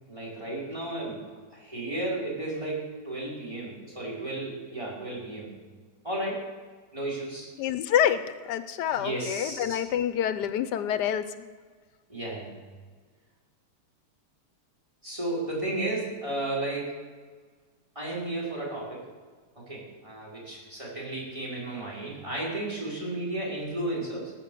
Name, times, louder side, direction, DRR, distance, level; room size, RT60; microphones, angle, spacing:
voice 1, 0.1-1.3 1.5-5.5 6.0-6.5 6.9-7.5 8.9-9.9 12.1-12.6 15.0-17.0 17.9-19.0 19.6-24.3, right 2 dB, 20° right, -5 dB, 4.6 m, -33 dB
voice 2, 7.6-11.3, left 10 dB, 85° left, 12 dB, 1.3 m, -27 dB
18.5 x 7.1 x 6.8 m, 1.5 s
omnidirectional pair, 1.8 m